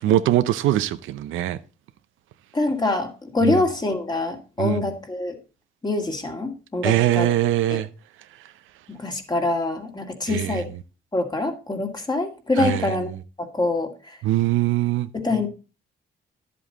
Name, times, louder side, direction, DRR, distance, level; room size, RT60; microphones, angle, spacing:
voice 1, 0.0-1.6 3.4-3.5 4.6-4.8 6.8-7.9 10.3-10.6 12.6-13.0 14.2-15.1, right 13 dB, 85° right, 0.7 m, -22 dB
voice 2, 2.5-5.4 5.8-7.3 7.7-7.8 8.9-10.7 11.1-13.1 13.4-14.2 15.1-15.5, left 2 dB, 20° left, 2.2 m, -25 dB
11.0 x 7.7 x 4.0 m
cardioid pair, 90°, 20 cm